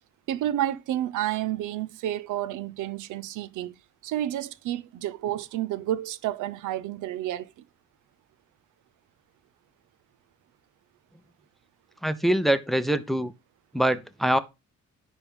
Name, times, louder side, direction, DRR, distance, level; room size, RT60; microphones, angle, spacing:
voice 1, 0.3-3.8 4.0-7.5, right 12 dB, 85° right, 0.6 m, -30 dB
voice 2, 12.0-13.3 13.7-14.4, right 1 dB, ahead, 0.7 m, -24 dB
9.9 x 3.5 x 5.2 m
cardioid pair, 90°, 30 cm